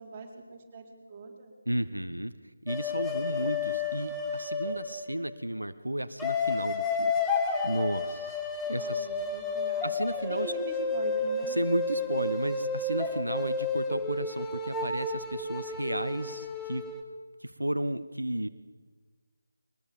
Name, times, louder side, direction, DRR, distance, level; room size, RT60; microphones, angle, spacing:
voice 1, 0.0-1.6 8.8-10.0 10.3-11.6, right 3 dB, 20° right, -1 dB, 4.4 m, -42 dB
voice 2, 1.7-2.3 2.6-7.1 7.6-8.4 8.6-9.1 9.8-10.5 11.5-16.8 17.4-18.5, right 1 dB, 85° right, 11 dB, 1.2 m, -33 dB
sound 1, 2.7-5.2 6.2-17.0, left 3 dB, 5° left, 1.6 m, -31 dB
22.5 x 20.5 x 7.2 m, 1.5 s
figure-of-eight pair, 160°, 0 cm